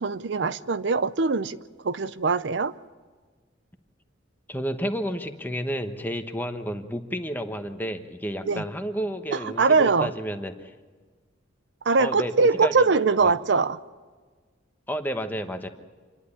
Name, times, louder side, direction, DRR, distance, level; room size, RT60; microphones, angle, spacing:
voice 1, 0.0-1.6 1.8-2.7 8.5-8.6 9.3-10.1 11.9-13.8, right 4 dB, 65° right, 0.5 m, -22 dB
voice 2, 4.5-10.7 12.0-12.7 13.2-13.3 14.9-15.7, equal, 10° left, 1.1 m, -31 dB
27.5 x 11.0 x 9.9 m
head